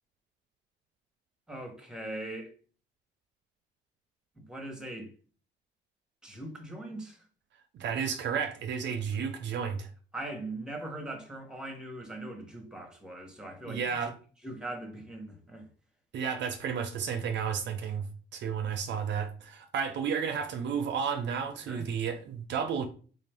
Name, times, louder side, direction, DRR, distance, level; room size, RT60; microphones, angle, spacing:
voice 1, 1.5-2.5 4.4-5.1 6.2-7.3 8.9-9.0 10.1-14.1 14.4-15.7 21.6-21.9, right 1 dB, 5° right, 1.1 m, -41 dB
voice 2, 7.7-9.9 13.7-14.1 16.1-22.9, right 7 dB, 65° right, 0.4 m, -32 dB
3.7 x 2.5 x 3.3 m
cardioid pair, 90°, 20 cm